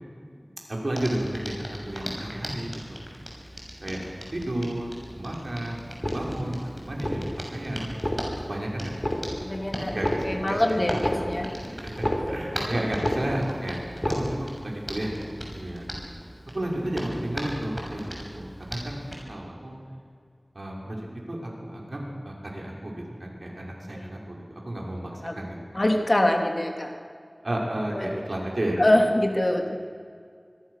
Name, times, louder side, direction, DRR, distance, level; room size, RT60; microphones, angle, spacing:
voice 1, 0.7-3.0 3.4-4.0 4.3-4.9 5.1-8.0 8.4-9.1 9.4-9.6 9.9-10.9 11.5-13.8 14.1-15.9 16.5-18.0 18.3-19.0 19.3-19.8 20.5-25.6 27.4-28.8, right 1 dB, 75° right, -1 dB, 6.0 m, -32 dB
Hands, 0.9-19.2, equal, 5° right, 6.7 m, -39 dB
sound 1, 5.9-6.6 6.9-7.6 7.9-8.6 8.9-9.6 9.9-12.6 12.9-13.6 13.9-14.6 14.9-15.0, equal, 25° left, 4.2 m, -30 dB
voice 2, 9.3-10.0 10.3-11.5 12.5-12.8 23.9-24.1 25.2-25.4 25.7-26.9 27.9-28.1 28.8-29.8, left 1 dB, 50° left, 3 dB, 3.0 m, -24 dB
26.5 x 21.5 x 6.7 m, 2.2 s
wide cardioid pair, 45°, 0 cm